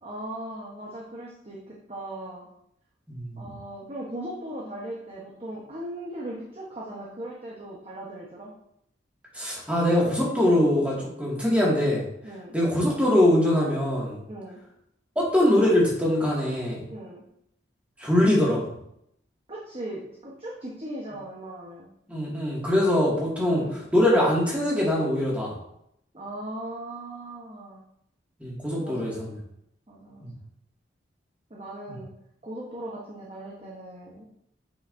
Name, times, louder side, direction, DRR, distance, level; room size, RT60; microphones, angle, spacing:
voice 1, 0.0-2.5 3.4-8.5 12.2-12.5 14.3-14.6 16.9-17.2 19.5-21.9 23.5-23.7 26.1-27.8 28.8-29.3 29.9-30.3 31.5-32.1 32.4-34.2, right 1 dB, 30° right, -4 dB, 1.0 m, -38 dB
voice 2, 3.1-3.4 9.3-12.1 12.5-14.2 15.2-16.8 18.0-18.6 22.1-25.5 28.4-29.4 30.2-30.3 31.9-32.0, left 1 dB, 5° right, -5 dB, 2.0 m, -23 dB
8.2 x 5.8 x 2.6 m, 0.76 s
head